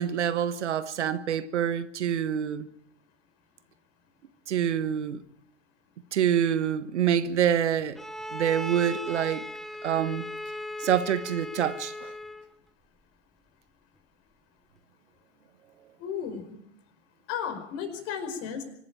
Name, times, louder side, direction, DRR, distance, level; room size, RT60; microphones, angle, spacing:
voice 1, 0.0-2.7 4.5-5.2 6.1-8.0 8.3-9.4 9.8-10.2 10.8-12.1, right 9 dB, 65° right, 1.4 m, -26 dB
Bowed string instrument, 8.0-12.6, left 1 dB, ahead, 0.8 m, -38 dB
voice 2, 16.0-16.5 17.3-18.6, left 7 dB, 40° left, 5.0 m, -34 dB
25.0 x 12.5 x 9.0 m
figure-of-eight pair, 100°, 37 cm